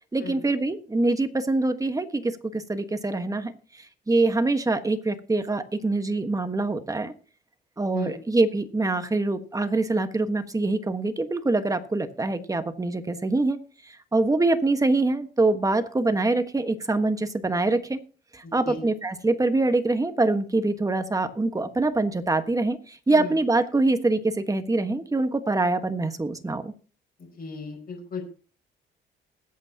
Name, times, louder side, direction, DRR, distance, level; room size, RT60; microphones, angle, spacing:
voice 1, 0.1-7.1 7.8-13.6 13.8-18.0 18.3-26.7, right 2 dB, 15° right, 8 dB, 1.3 m, -24 dB
voice 2, 27.4-28.2, left 4 dB, 50° left, -1 dB, 5.3 m, -35 dB
20.5 x 8.4 x 2.9 m, 0.38 s
cardioid pair, 90°, 20 cm